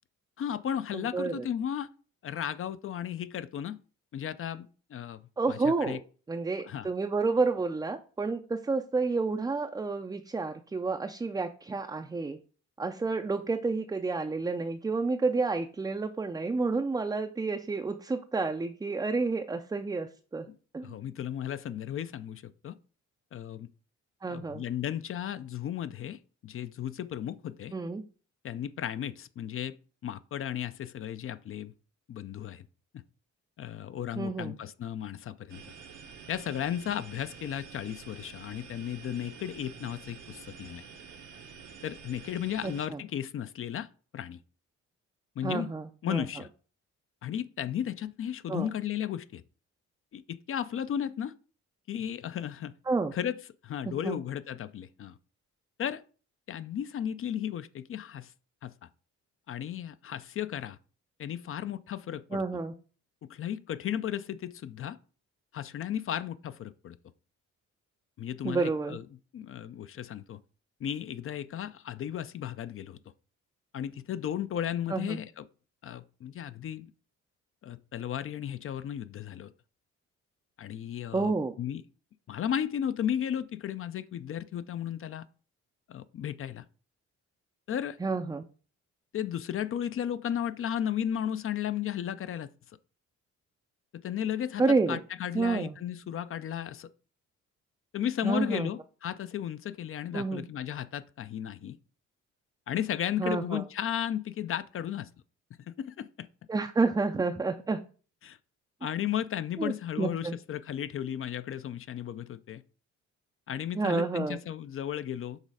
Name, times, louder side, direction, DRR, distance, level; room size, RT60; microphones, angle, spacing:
voice 1, 0.4-1.9 2.2-3.8 4.1-6.0 6.6-6.9 20.5-20.6 20.8-22.8 23.3-23.7 24.3-27.7 28.4-29.8 30.0-31.7 32.1-32.7 32.9-33.0 33.6-35.6 36.3-40.8 41.8-43.9 44.1-44.4 45.4-45.7 46.0-46.5 47.2-49.4 50.1-51.3 51.9-52.7 53.1-55.2 55.8-56.0 56.5-58.3 58.6-58.7 59.5-60.8 61.2-62.4 63.2-65.0 65.5-67.0 68.2-69.1 69.3-70.4 70.8-73.0 73.7-75.4 75.8-76.9 77.6-79.5 80.6-81.8 82.3-85.3 85.9-86.6 87.7-88.0 89.1-92.5 93.9-96.9 97.9-101.8 102.7-105.1 105.7-106.3 108.2-108.4 108.8-112.6 113.5-115.4, left 10 dB, 45° left, 0.4 m, -34 dB
voice 2, 0.9-1.5 5.4-6.0 6.3-12.4 12.8-20.4 20.7-21.0 24.2-24.6 27.7-28.0 34.2-34.6 42.6-43.0 45.4-46.3 48.5-48.7 52.9-53.1 53.9-54.2 62.3-62.7 68.4-69.0 74.9-75.2 81.1-81.5 88.0-88.4 94.6-95.0 95.3-95.7 98.2-98.7 100.1-100.4 103.2-103.6 106.5-107.8 109.6-110.3 113.8-114.4, right 3 dB, 15° right, 0.4 m, -30 dB
sound 1, 35.5-42.8, right 6 dB, 80° right, 1.0 m, -48 dB
6.5 x 3.1 x 4.8 m
cardioid pair, 90°, 30 cm